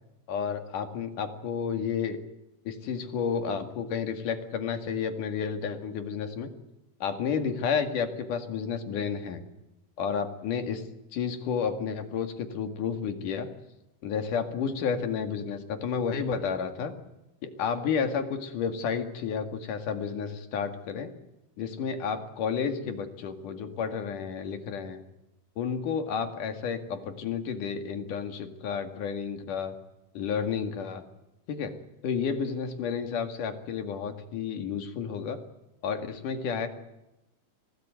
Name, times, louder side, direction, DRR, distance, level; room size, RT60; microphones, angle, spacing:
voice 1, 0.3-2.2 2.7-6.5 7.0-9.4 10.0-10.8 11.1-13.5 14.0-16.9 17.4-21.1 21.6-25.0 25.6-29.8 30.2-31.0 31.5-31.7 32.0-35.4 35.8-36.7, left 6 dB, 80° left, 7 dB, 3.7 m, -31 dB
24.5 x 18.0 x 9.3 m, 0.92 s
omnidirectional pair, 3.6 m